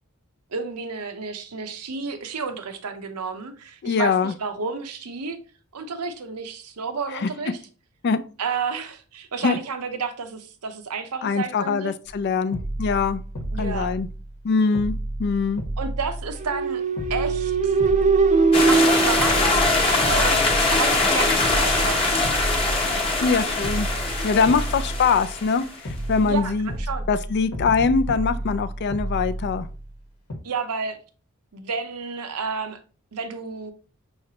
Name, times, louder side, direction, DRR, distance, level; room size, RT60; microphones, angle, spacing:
voice 1, 0.5-5.4 5.7-7.6 8.4-11.9 13.5-13.9 15.8-16.8 17.1-17.7 18.6-20.4 20.7-22.6 24.4-24.5 26.2-27.1 30.4-31.0 31.5-32.8 33.1-33.7, right 5 dB, 90° right, 0.7 m, -31 dB
voice 2, 3.8-4.3 7.1-7.3 8.0-8.2 9.4-9.6 11.2-13.2 13.6-14.1 14.4-15.6 23.2-23.9 24.2-26.7 27.1-29.7, left 5 dB, 50° left, 0.4 m, -23 dB
sound 1, 12.1-12.2 12.5-14.4 14.7-16.7 17.0-18.8 19.2-21.1 21.4-23.3 23.6-25.5 25.8-30.0 30.3-30.4, right 1 dB, 85° left, 1.1 m, -32 dB
sound 2, 16.4-20.2, right 4 dB, 30° right, 0.4 m, -21 dB
sound 3, 18.5-25.7, left 2 dB, 25° left, 0.9 m, -22 dB
5.7 x 3.2 x 2.8 m
head